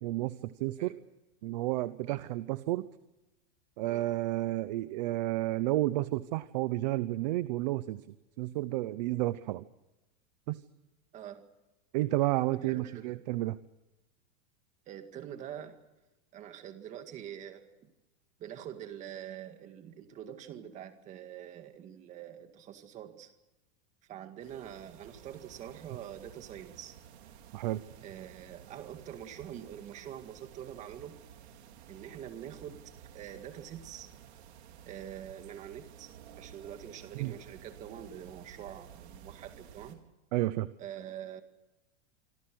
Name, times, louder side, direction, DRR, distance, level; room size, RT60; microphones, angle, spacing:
voice 1, 0.0-1.0 1.4-2.9 3.8-8.0 8.4-9.7 10.5-10.6 11.9-13.6 27.5-27.8 37.2-37.3 40.3-40.7, right 17 dB, 35° right, 15 dB, 0.8 m, -31 dB
voice 2, 11.1-11.5 12.5-13.2 14.9-15.8 16.3-17.9 18.4-23.3 24.1-27.0 28.0-31.2 31.9-34.1 34.8-40.0 40.8-41.4, right 10 dB, 20° right, 8 dB, 2.0 m, -45 dB
sound 1, 24.4-40.0, right 8 dB, 65° right, 4.6 m, -53 dB
26.0 x 26.0 x 6.3 m, 1.0 s
supercardioid pair, 180°, 35 cm